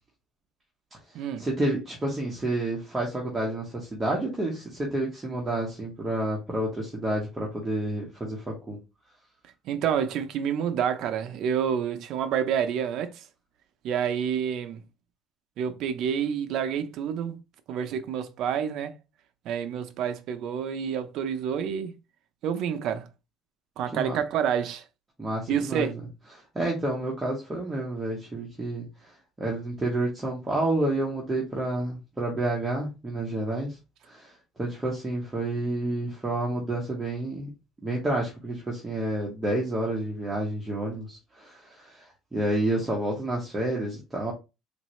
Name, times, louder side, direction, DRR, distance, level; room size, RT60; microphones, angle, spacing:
voice 1, 1.4-8.8 23.9-24.2 25.2-25.9 26.5-29.1 29.4-33.8 34.0-34.3 34.6-37.5 37.8-42.1 42.3-44.3, right 1 dB, 15° right, 0.9 m, -29 dB
voice 2, 9.7-13.2 13.8-14.8 15.6-17.4 17.7-18.9 19.5-21.9 22.4-23.1 23.8-24.8 25.5-25.9, right 8 dB, 60° right, 0.6 m, -28 dB
3.8 x 2.6 x 3.1 m
cardioid pair, 145°, 0 cm